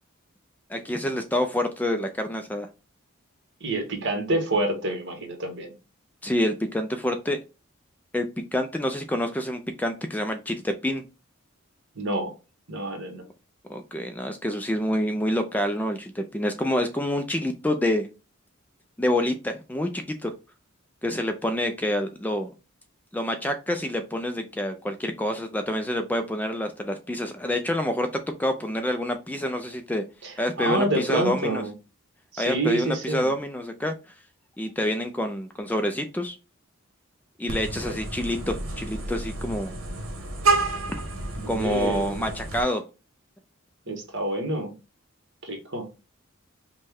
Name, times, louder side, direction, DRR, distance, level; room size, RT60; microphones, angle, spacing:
voice 1, 0.7-2.7 6.2-7.4 8.1-11.0 13.7-18.1 19.0-20.3 21.0-22.5 23.1-30.0 30.4-31.6 32.4-33.9 34.6-36.4 37.4-39.7 41.5-42.8, left 1 dB, 10° left, 6 dB, 0.3 m, -27 dB
voice 2, 3.6-5.7 11.9-12.3 12.7-13.2 30.2-31.7 32.3-33.3 41.4-42.3 43.9-44.7 45.4-45.9, right 1 dB, 55° right, 3 dB, 1.2 m, -28 dB
Vehicle horn car horn honking, 37.5-42.6, right 3 dB, 75° right, 1.1 m, -29 dB
5.3 x 2.2 x 3.4 m, 0.30 s
head